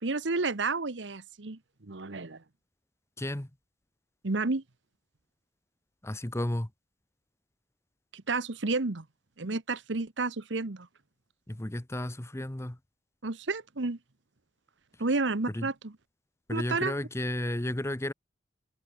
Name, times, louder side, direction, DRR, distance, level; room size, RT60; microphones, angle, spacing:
voice 1, 0.0-2.4 4.2-4.6 8.1-9.0 9.4-10.9 13.2-14.0 15.0-16.0 16.5-17.0, right 3 dB, 70° right, 1.1 m, -31 dB
voice 2, 3.2-3.5 6.0-6.7 11.5-12.8 15.5-15.7 16.5-18.1, left 1 dB, 15° left, 0.9 m, -32 dB
head